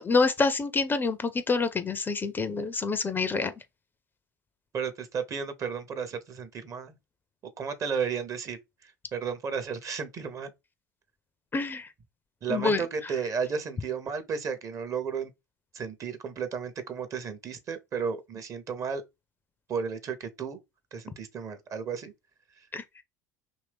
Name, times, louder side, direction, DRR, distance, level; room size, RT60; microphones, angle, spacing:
voice 1, 0.0-3.5 11.5-11.9 12.5-12.8 22.7-22.8, left 4 dB, 20° left, 0.4 m, -27 dB
voice 2, 4.7-6.9 7.6-10.5 12.4-15.3 15.7-19.0 19.7-20.6 20.9-22.1 22.6-22.7, right 6 dB, 35° right, 0.7 m, -33 dB
2.8 x 2.6 x 3.3 m
figure-of-eight pair, 70°, 9 cm